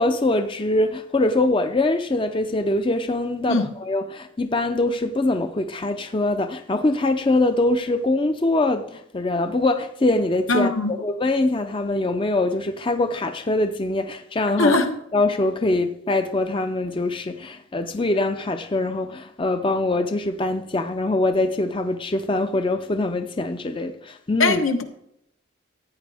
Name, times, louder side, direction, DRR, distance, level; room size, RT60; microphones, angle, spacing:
voice 1, 0.0-14.8 15.1-24.6, left 2 dB, 25° left, 0.5 m, -23 dB
voice 2, 10.5-10.9 14.6-14.9 24.4-24.8, left 2 dB, 80° left, 1.3 m, -20 dB
15.5 x 9.2 x 3.5 m
head